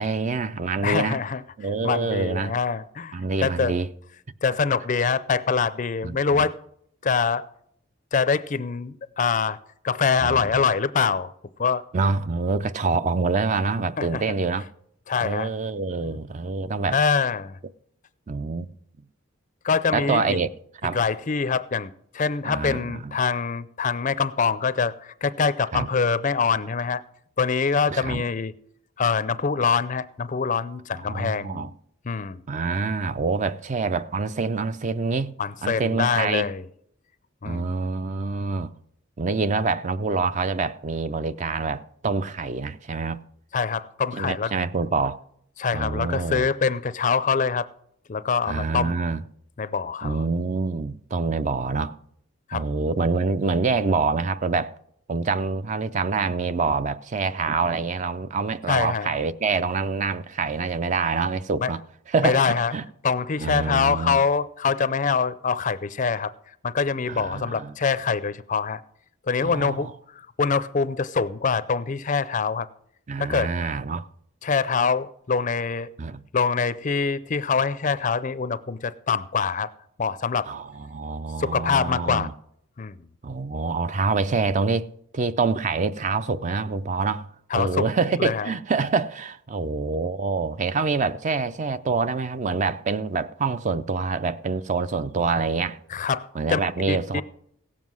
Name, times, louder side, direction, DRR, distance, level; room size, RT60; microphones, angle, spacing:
voice 1, 0.0-1.2 1.6-2.5 3.1-3.9 6.0-6.4 10.2-10.4 11.9-14.6 15.2-17.0 18.3-18.7 19.9-20.5 20.8-21.0 22.4-23.1 25.7-25.9 27.9-28.2 31.1-31.7 32.5-35.3 35.6-36.5 37.4-38.7 39.2-43.2 44.1-45.2 45.7-46.5 48.5-49.2 50.0-52.0 52.5-54.7 55.1-61.8 62.1-62.8 63.4-64.2 67.1-67.7 69.4-69.9 73.1-74.1 76.0-76.2 80.5-82.3 83.2-84.9 85.1-95.8 96.3-97.2, right 4 dB, 35° right, 0.4 m, -26 dB
voice 2, 0.8-1.4 1.8-3.7 4.4-6.5 7.0-7.4 8.1-9.6 9.8-11.3 11.6-11.8 14.0-14.2 15.1-15.5 16.0-16.2 16.9-17.6 19.6-20.4 20.9-27.0 27.4-28.5 29.0-31.7 32.0-32.4 35.4-36.6 37.4-37.8 43.5-44.5 45.6-47.7 48.1-49.0 49.6-50.2 52.5-52.7 58.7-59.1 61.6-61.7 62.2-62.7 63.0-66.3 66.6-68.8 69.3-72.7 73.2-73.5 74.4-75.9 76.3-79.7 80.0-80.5 81.4-82.3 82.8-83.0 87.5-87.9 88.2-88.5 95.9-96.6 96.9-97.2, left 5 dB, 35° left, 0.4 m, -24 dB
16.5 x 7.4 x 6.2 m
head